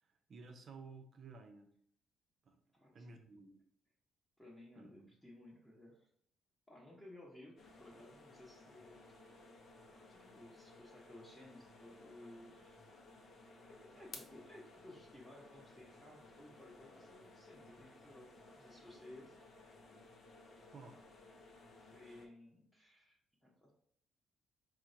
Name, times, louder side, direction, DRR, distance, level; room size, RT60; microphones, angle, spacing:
voice 1, 0.0-1.7 2.5-2.6 2.9-3.6 4.8-5.1 20.7-21.0, right 4 dB, 50° right, 6 dB, 0.5 m, -55 dB
voice 2, 2.7-3.2 4.4-6.1 6.7-9.4 10.1-12.8 13.6-18.3 18.6-19.3 21.8-23.7, left 1 dB, 10° left, -5 dB, 0.9 m, -57 dB
sound 1, 7.6-22.3, left 3 dB, 55° left, 0.6 m, -58 dB
4.4 x 2.1 x 2.6 m, 0.65 s
hypercardioid pair, 50°, 0 cm